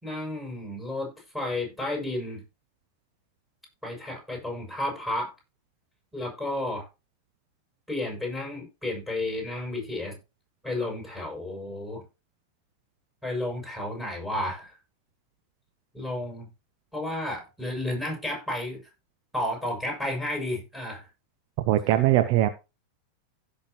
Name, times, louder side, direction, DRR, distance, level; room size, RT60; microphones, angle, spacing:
voice 1, 0.0-2.4 3.8-5.3 6.1-6.9 7.9-10.2 10.6-12.0 13.2-14.7 15.9-16.5 16.9-18.8 19.3-21.1, left 1 dB, ahead, -1 dB, 6.7 m, -32 dB
voice 2, 21.7-22.5, right 14 dB, 45° right, 10 dB, 0.8 m, -21 dB
16.0 x 6.6 x 3.0 m, 0.28 s
figure-of-eight pair, 90°, 0 cm